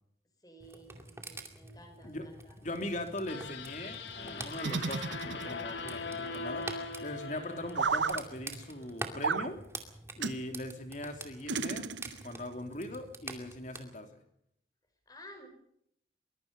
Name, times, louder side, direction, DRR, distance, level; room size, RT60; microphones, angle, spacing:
voice 1, 0.4-2.6 15.1-15.5, equal, 20° left, 5 dB, 5.8 m, -53 dB
sound 1, 0.6-13.8, right 2 dB, 15° right, 2.4 m, -47 dB
voice 2, 2.6-9.6 10.2-12.0 12.2-14.2, left 1 dB, 40° left, 5 dB, 3.2 m, -40 dB
sound 2, 3.3-8.5, left 4 dB, 70° left, 2.2 m, -41 dB
sound 3, 4.6-5.8 7.7-8.2 9.2-9.5 10.2-10.4 11.5-12.3, right 5 dB, 80° right, 1.0 m, -32 dB
24.0 x 21.5 x 5.4 m, 0.71 s
head